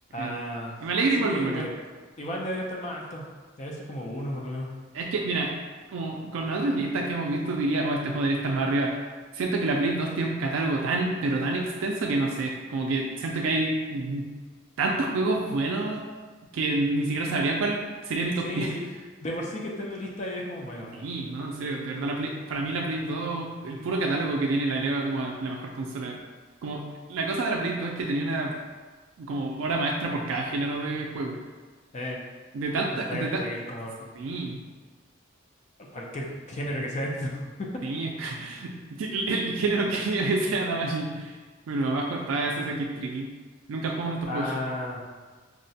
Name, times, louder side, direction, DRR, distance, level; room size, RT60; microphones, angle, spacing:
voice 1, 0.1-0.8 1.2-1.7 2.2-3.2 3.6-4.7 18.4-18.9 19.2-21.1 31.9-32.2 33.1-34.1 35.9-37.7 44.3-45.0, left 1 dB, 35° left, -2 dB, 0.4 m, -33 dB
voice 2, 0.8-1.7 4.9-5.5 5.9-9.1 9.3-14.3 14.8-16.0 16.5-18.8 20.9-26.2 26.6-26.8 27.1-28.5 29.2-31.4 32.5-33.4 34.1-34.6 37.8-41.4 41.7-43.3 43.7-44.6, right 2 dB, 70° right, 0 dB, 0.3 m, -28 dB
4.6 x 2.1 x 2.6 m, 1.4 s
head